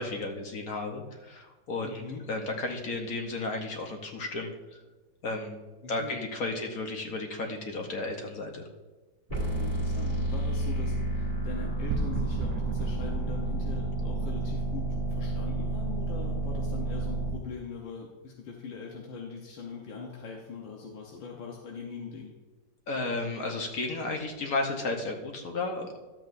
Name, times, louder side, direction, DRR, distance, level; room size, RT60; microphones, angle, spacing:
voice 1, 0.0-4.8 5.2-5.6 5.9-8.7 22.9-26.1, left 2 dB, 55° left, 3 dB, 1.3 m, -33 dB
voice 2, 1.8-2.2 5.8-6.2 6.5-6.6 9.5-22.4, left 5 dB, 90° left, -1 dB, 1.8 m, -41 dB
sound 1, 9.3-17.3, right 2 dB, 20° left, 2.2 m, -31 dB
sound 2, 9.3-15.0, right 4 dB, 65° right, 1.0 m, -38 dB
12.5 x 7.8 x 2.6 m, 1.2 s
omnidirectional pair, 2.0 m